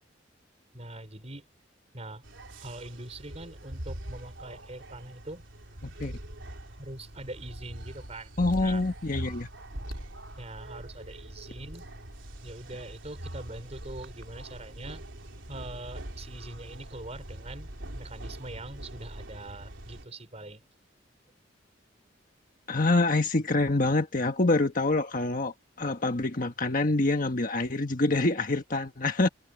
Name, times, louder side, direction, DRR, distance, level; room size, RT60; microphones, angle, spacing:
voice 1, 0.7-1.5 1.9-2.2 2.6-5.4 6.8-8.3 8.6-8.8 10.4-11.8 12.4-15.0 15.5-20.6, right 2 dB, 35° right, 4.3 m, -43 dB
sound 1, 2.2-20.1, right 1 dB, 85° right, 3.4 m, -42 dB
voice 2, 5.8-6.1 8.4-9.5 22.7-29.3, left 2 dB, 45° left, 1.4 m, -26 dB
head